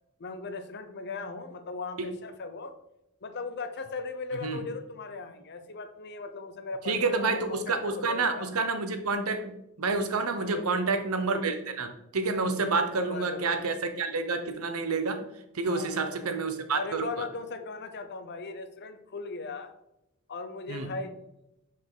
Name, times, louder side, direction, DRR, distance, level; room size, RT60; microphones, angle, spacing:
voice 1, 0.2-2.7 3.2-8.5 10.3-10.9 12.8-13.7 15.7-16.4 16.7-19.7 20.3-21.2, left 3 dB, 50° left, 8 dB, 0.7 m, -38 dB
voice 2, 6.9-9.5 9.8-15.2 15.5-17.2 20.7-20.9, right 3 dB, 90° right, 8 dB, 0.9 m, -29 dB
5.5 x 5.1 x 3.9 m, 0.85 s
head